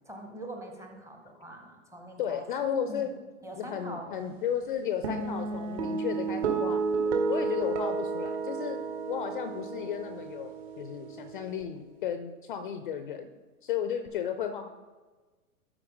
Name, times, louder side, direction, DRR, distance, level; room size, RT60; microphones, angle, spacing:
voice 1, 0.1-2.4 2.9-3.1 3.4-4.4, right 1 dB, 5° right, 2 dB, 0.7 m, -43 dB
voice 2, 2.2-3.1 3.6-6.8 7.3-8.8 9.1-13.3 13.6-14.7, left 8 dB, 35° left, 8 dB, 0.4 m, -34 dB
sound 1, 5.0-11.6, right 4 dB, 45° right, 1.4 m, -32 dB
11.5 x 4.6 x 3.7 m, 1.3 s
figure-of-eight pair, 115°, 45 cm